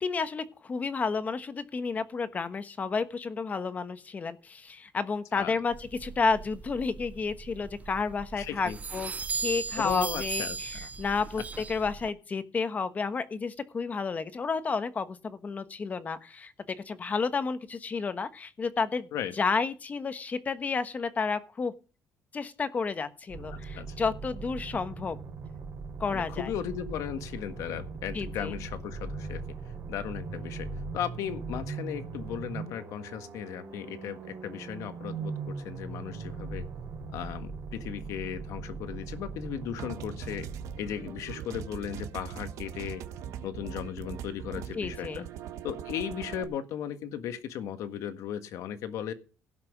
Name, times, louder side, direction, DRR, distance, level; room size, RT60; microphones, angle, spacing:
voice 1, 0.0-19.1 19.4-21.7 22.3-25.2 26.0-26.5 28.1-28.5 44.7-45.3, left 4 dB, 30° left, 11 dB, 1.2 m, -31 dB
sound 1, 5.7-12.1, right 5 dB, 25° right, 0.7 m, -38 dB
voice 2, 8.4-8.8 9.8-10.9 19.1-19.3 23.5-24.0 26.1-29.4 29.9-30.7 30.9-36.7 37.1-40.5 40.8-43.0 43.4-45.3 45.6-49.1, left 9 dB, 75° left, 9 dB, 1.6 m, -36 dB
sound 2, 23.3-41.4, right 4 dB, 50° right, 3.7 m, -40 dB
sound 3, 39.8-46.4, right 9 dB, 75° right, 1.4 m, -40 dB
17.0 x 6.0 x 6.0 m, 0.35 s
cardioid pair, 130°, 6 cm